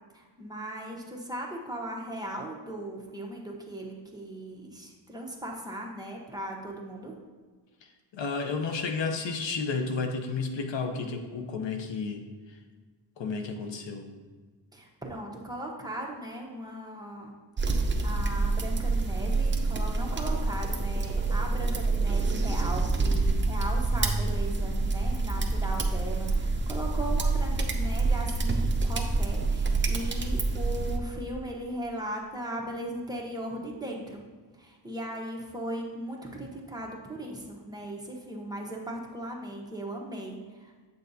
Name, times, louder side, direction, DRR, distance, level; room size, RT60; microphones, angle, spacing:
voice 1, 0.1-7.2 14.7-17.3 17.6-17.7 18.0-34.2 34.6-40.9, right 1 dB, 10° right, -2 dB, 1.0 m, -38 dB
voice 2, 7.8-12.6 13.2-14.1, left 4 dB, 80° left, 5 dB, 0.8 m, -32 dB
sound 1, 17.6-31.0, right 3 dB, 25° right, 0.7 m, -27 dB
8.5 x 6.4 x 2.7 m, 1.4 s
wide cardioid pair, 115°, 44 cm